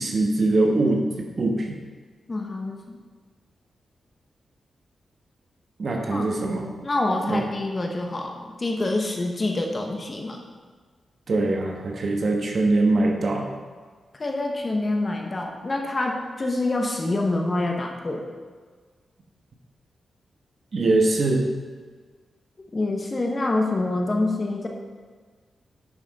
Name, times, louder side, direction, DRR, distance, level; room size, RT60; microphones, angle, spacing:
voice 1, 0.0-1.8 5.8-6.7 7.2-7.4 11.3-13.5 20.7-21.5, right 2 dB, 50° right, 1 dB, 1.3 m, -22 dB
voice 2, 2.3-3.0 6.1-6.2 6.8-10.4 14.2-18.3 22.7-24.7, left 2 dB, 30° left, 1 dB, 1.2 m, -26 dB
10.0 x 5.9 x 4.2 m, 1.5 s
wide cardioid pair, 110°, 0 cm